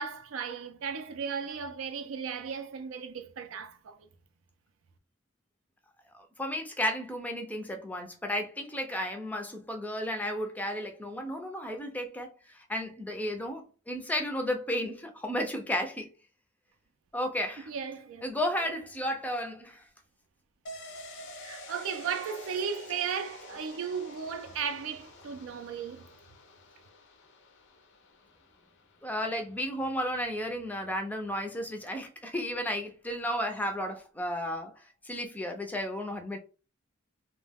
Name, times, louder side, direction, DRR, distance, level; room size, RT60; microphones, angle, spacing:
voice 1, 0.0-4.0 17.7-18.2 18.6-18.7 21.4-26.1, right 6 dB, 70° right, 0.4 m, -35 dB
voice 2, 6.1-12.3 12.7-16.1 17.1-17.7 18.2-19.8 29.0-34.7 35.0-36.4, equal, 10° left, 0.4 m, -33 dB
sound 1, 20.7-30.1 30.4-30.5, left 1 dB, 60° left, 0.6 m, -49 dB
2.2 x 2.1 x 3.3 m
head